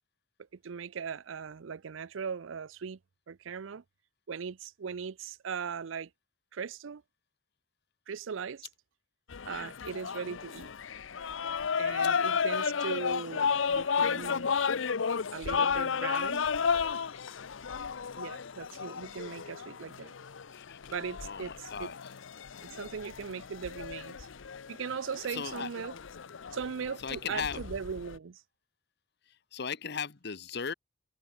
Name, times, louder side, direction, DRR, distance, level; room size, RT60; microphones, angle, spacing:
voice 1, 0.6-3.0 3.3-3.8 4.3-6.1 6.5-7.0 8.1-8.7 9.4-10.7 11.8-14.5 15.3-16.5 18.2-20.1 20.9-21.9 22.6-24.3 24.7-26.0 26.5-28.4, right 6 dB, 90° right, 0.5 m, -39 dB
sound 1, 9.3-28.2, left 6 dB, 85° left, 0.7 m, -33 dB
voice 2, 21.2-22.0 25.3-25.7 27.0-27.6 29.5-30.7, left 6 dB, 60° left, 1.0 m, -37 dB
head